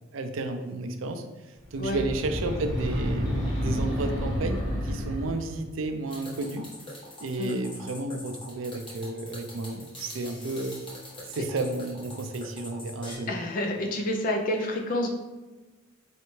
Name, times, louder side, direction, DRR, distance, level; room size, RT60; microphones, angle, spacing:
voice 1, 0.1-6.6 7.2-10.8 11.3-13.3, right 2 dB, 75° right, 7 dB, 0.4 m, -32 dB
sound 1, 1.7-5.6, equal, ahead, 1.2 m, -30 dB
sound 2, 6.1-13.1, left 1 dB, 25° left, 1.1 m, -43 dB
voice 2, 13.3-15.1, left 1 dB, 45° left, 2 dB, 0.4 m, -29 dB
3.9 x 3.2 x 3.1 m, 1.2 s
head